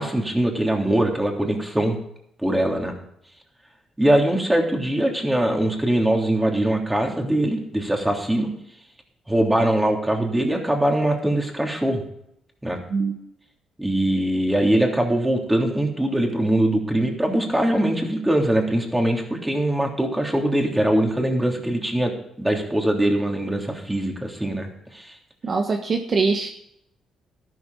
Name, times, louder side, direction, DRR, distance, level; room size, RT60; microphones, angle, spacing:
voice 1, 0.0-2.0 2.4-2.9 4.0-8.5 9.3-12.0 12.6-12.8 13.8-25.1, right 1 dB, 10° right, 1 dB, 3.2 m, -22 dB
voice 2, 25.4-26.5, right 4 dB, 45° right, 4 dB, 1.3 m, -23 dB
13.0 x 12.5 x 4.0 m, 0.75 s
cardioid pair, 90°, 0 cm